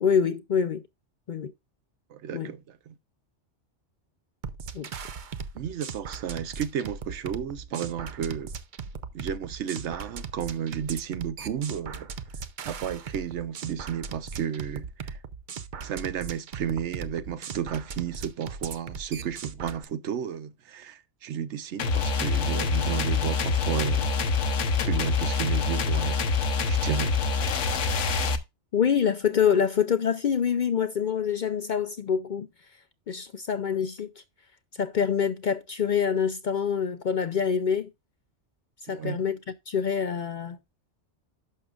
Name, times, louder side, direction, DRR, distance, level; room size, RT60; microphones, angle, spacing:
voice 1, 0.0-0.8 1.3-1.5 2.3-2.5 4.7-4.9 28.7-32.5 33.1-34.1 34.8-37.9 38.9-39.4 39.7-40.6, left 7 dB, 55° left, 0.5 m, -25 dB
voice 2, 2.1-2.9 5.5-8.5 9.1-12.1 12.6-15.2 15.8-24.1 24.8-26.2 26.7-27.2 38.9-39.2, right 8 dB, 75° right, 1.0 m, -33 dB
sound 1, 4.4-19.8, right 6 dB, 50° right, 0.7 m, -38 dB
sound 2, 21.8-28.4, left 4 dB, 90° left, 1.3 m, -25 dB
11.0 x 6.5 x 2.4 m
omnidirectional pair, 1.2 m